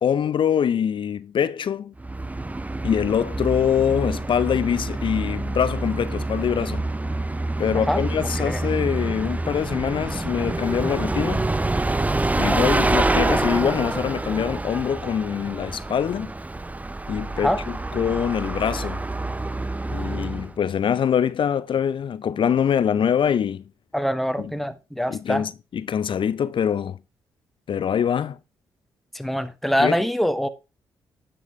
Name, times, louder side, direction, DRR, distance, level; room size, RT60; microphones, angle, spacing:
voice 1, 0.0-1.9 2.8-6.8 7.6-11.5 12.4-16.3 17.1-19.0 19.9-23.6 24.4-24.5 25.1-27.0 27.7-28.4 29.8-30.0, left 8 dB, 55° left, 0.5 m, -24 dB
Bus, 2.0-20.6, right 2 dB, 15° right, 0.6 m, -27 dB
voice 2, 23.9-25.5 29.1-30.5, equal, ahead, 1.0 m, -24 dB
9.6 x 5.4 x 4.6 m
hypercardioid pair, 40°, 10 cm